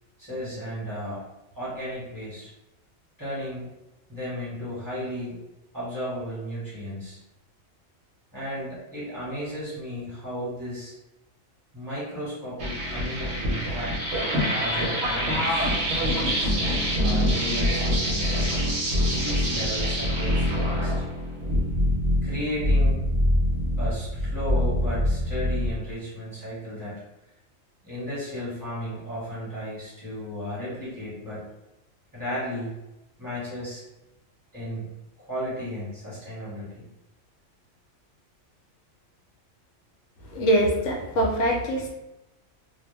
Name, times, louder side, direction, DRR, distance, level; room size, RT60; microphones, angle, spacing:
voice 1, 0.2-1.2 1.5-2.5 3.2-3.7 4.1-5.4 5.7-7.2 8.3-10.9 11.7-18.5 19.2-21.0 22.2-23.0 23.8-27.0 27.8-31.5 32.1-32.7 33.2-33.8 34.5-34.9 35.2-36.8, equal, 15° right, -10 dB, 1.2 m, -34 dB
sound 1, 12.6-25.7, equal, 60° right, 0.8 m, -25 dB
voice 2, 40.3-41.9, right 1 dB, 70° left, 0 dB, 0.9 m, -23 dB
2.3 x 2.1 x 3.2 m, 0.96 s
omnidirectional pair, 1.4 m